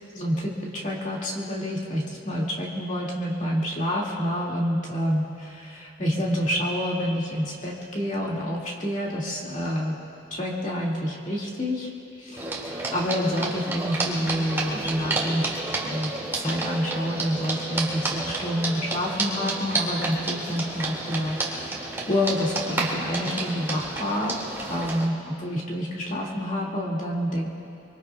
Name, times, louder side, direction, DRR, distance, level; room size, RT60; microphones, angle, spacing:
voice 1, 0.1-9.9 10.3-11.9 12.2-15.5 15.8-27.5, equal, 40° left, -3 dB, 2.2 m, -28 dB
sound 1, 12.4-25.1, right 2 dB, 15° right, 2.2 m, -30 dB
25.0 x 25.0 x 2.3 m, 2.7 s
head